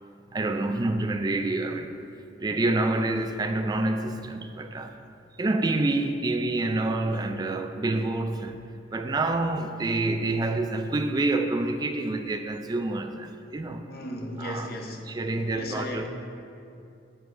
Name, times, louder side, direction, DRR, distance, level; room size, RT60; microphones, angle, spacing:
voice 1, 0.3-1.9 2.4-5.0 5.4-8.6 8.9-13.9 14.4-14.7 15.1-16.1, right 2 dB, 25° right, 0.3 m, -27 dB
voice 2, 13.9-15.2 15.5-16.1, left 1 dB, 55° left, 0.9 m, -36 dB
9.6 x 7.7 x 2.6 m
head